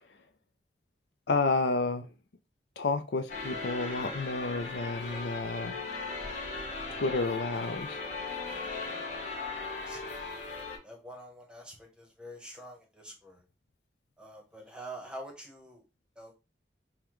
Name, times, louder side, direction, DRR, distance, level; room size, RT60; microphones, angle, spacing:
voice 1, 1.3-2.1 2.8-5.7 6.9-8.0, left 3 dB, 70° left, 0.5 m, -30 dB
sound 1, 3.3-10.8, left 3 dB, 40° left, 0.9 m, -38 dB
voice 2, 9.8-10.2 10.8-13.4 14.2-15.8 16.2-16.3, right 1 dB, 5° right, 1.0 m, -46 dB
5.5 x 2.2 x 3.0 m
head